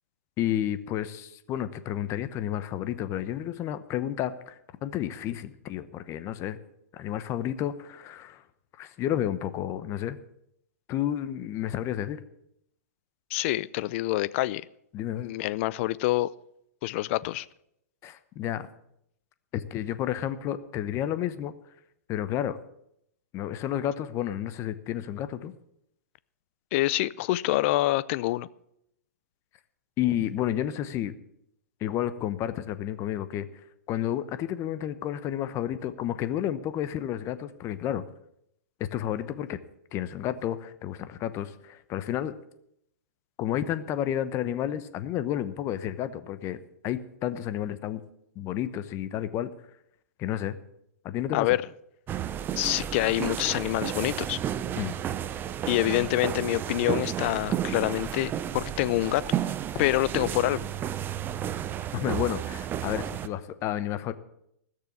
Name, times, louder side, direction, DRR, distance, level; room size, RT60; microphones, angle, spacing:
voice 1, 0.4-6.6 6.9-8.4 8.8-10.2 10.9-12.2 14.9-15.3 18.0-18.7 19.5-21.5 22.1-22.6 23.3-25.5 30.0-31.1 31.8-33.5 33.9-38.0 38.8-39.6 39.9-42.3 43.4-48.0 48.3-49.5 50.2-50.6 51.0-51.5 54.8-54.9 59.7-59.9 61.9-64.1, left 11 dB, 30° left, 1.0 m, -31 dB
voice 2, 13.3-14.6 15.2-16.3 16.8-17.5 26.7-28.5 51.3-51.6 52.6-54.4 55.7-59.2 59.8-60.7, left 17 dB, 45° left, 0.5 m, -26 dB
sound 1, 52.1-63.3, right 10 dB, 25° right, 0.6 m, -32 dB
15.5 x 6.7 x 8.6 m
hypercardioid pair, 125°, 9 cm